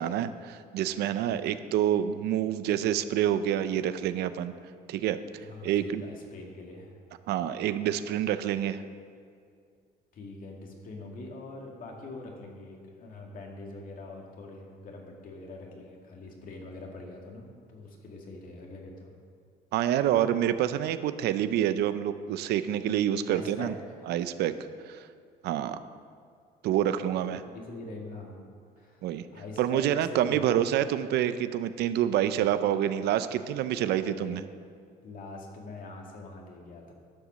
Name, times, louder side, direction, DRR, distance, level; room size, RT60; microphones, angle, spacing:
voice 1, 0.0-4.5 4.9-5.2 5.6-6.0 7.3-8.8 19.7-23.7 24.1-24.5 24.9-25.0 25.4-25.8 26.6-27.4 29.0-29.3 29.6-34.4, right 11 dB, 80° right, 12 dB, 0.6 m, -27 dB
voice 2, 5.4-7.0 10.1-19.1 23.3-24.1 27.2-28.5 28.8-30.6 34.0-34.4 35.0-36.9, left 2 dB, 55° left, 0 dB, 2.2 m, -43 dB
11.5 x 7.0 x 6.4 m, 2.3 s
cardioid pair, 110°, 17 cm